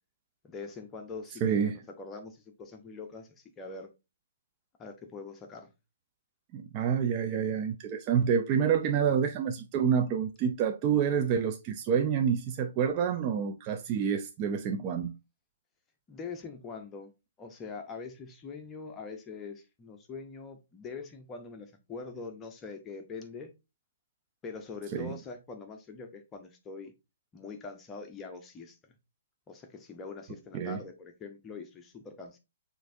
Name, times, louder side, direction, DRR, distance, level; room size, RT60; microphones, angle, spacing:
voice 1, 0.5-3.9 4.8-5.7 16.1-17.1 17.4-23.5 24.4-26.9 27.3-28.8 29.5-32.4, left 4 dB, 20° left, 0.6 m, -43 dB
voice 2, 1.4-1.7 6.5-15.2 24.9-25.1 30.5-30.8, right 7 dB, 30° right, 0.4 m, -28 dB
6.1 x 2.5 x 2.6 m
hypercardioid pair, 135°, 0 cm